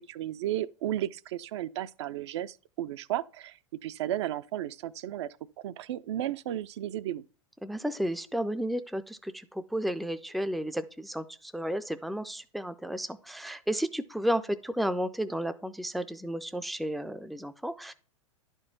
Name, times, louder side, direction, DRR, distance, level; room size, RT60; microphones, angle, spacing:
voice 1, 0.0-7.2, right 12 dB, 55° right, 0.5 m, -34 dB
voice 2, 7.6-17.9, equal, ahead, 0.4 m, -32 dB
11.0 x 4.5 x 5.7 m
figure-of-eight pair, 95°, 17 cm